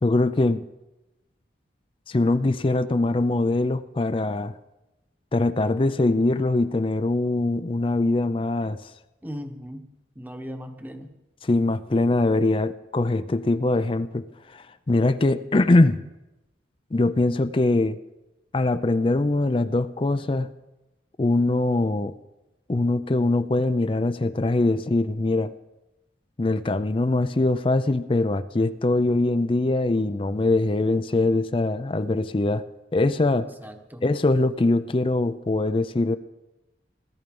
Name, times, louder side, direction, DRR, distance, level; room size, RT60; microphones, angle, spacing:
voice 1, 0.0-0.6 2.1-4.6 5.3-8.8 11.4-14.3 14.5-16.0 16.9-18.0 18.5-20.5 21.2-22.1 22.7-25.5 26.4-32.6 32.9-33.5 34.0-36.2, left 2 dB, 30° left, 12 dB, 0.5 m, -22 dB
voice 2, 9.2-9.9 10.1-11.1 33.4-34.1, equal, 10° right, 6 dB, 1.1 m, -38 dB
17.5 x 13.0 x 5.4 m, 0.99 s
head